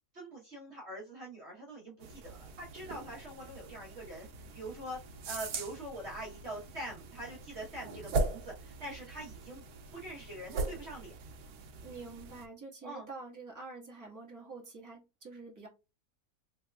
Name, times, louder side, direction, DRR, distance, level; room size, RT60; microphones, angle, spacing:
voice 1, 0.1-4.3 4.5-5.0 5.2-9.6 9.9-11.1 12.8-13.1, right 1 dB, 50° right, 1.2 m, -44 dB
sound 1, 2.0-12.5, right 3 dB, 80° right, 1.2 m, -40 dB
voice 2, 11.8-15.7, right 3 dB, 10° right, 1.3 m, -47 dB
3.4 x 3.1 x 2.2 m
omnidirectional pair, 1.6 m